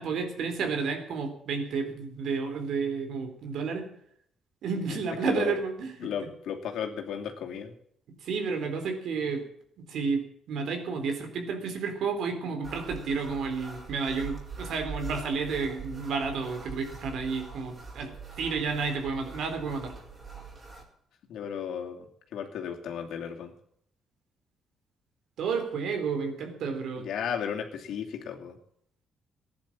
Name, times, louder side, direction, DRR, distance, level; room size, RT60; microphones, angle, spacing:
voice 1, 0.0-3.9 4.6-6.1 8.2-9.4 9.8-10.2 10.5-18.1 18.4-19.9 25.4-27.1, right 5 dB, 75° right, 6 dB, 3.7 m, -31 dB
voice 2, 5.2-5.6 6.0-7.7 21.3-22.1 22.3-23.5 27.0-28.6, left 8 dB, 75° left, 2 dB, 2.6 m, -34 dB
sound 1, 12.6-20.8, right 4 dB, 35° right, 4.7 m, -43 dB
15.5 x 10.5 x 7.4 m, 0.70 s
cardioid pair, 90°, 0 cm